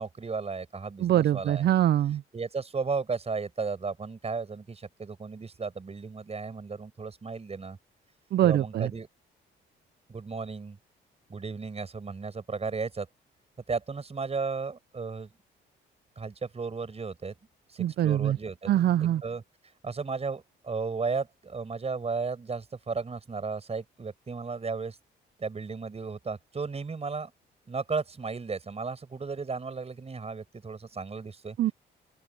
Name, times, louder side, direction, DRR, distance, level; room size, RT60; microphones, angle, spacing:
voice 1, 0.0-1.7 2.3-7.8 8.4-9.1 10.1-10.8 11.3-13.1 13.7-15.3 16.1-17.3 17.7-19.4 19.8-25.0 25.4-27.3 27.7-31.6, right 4 dB, 30° right, 5.1 m, -34 dB
voice 2, 1.0-2.2 8.3-8.9 17.8-18.4 18.7-19.2 31.6-31.7, right 12 dB, 55° right, 0.4 m, -23 dB
open air
cardioid pair, 90°, 20 cm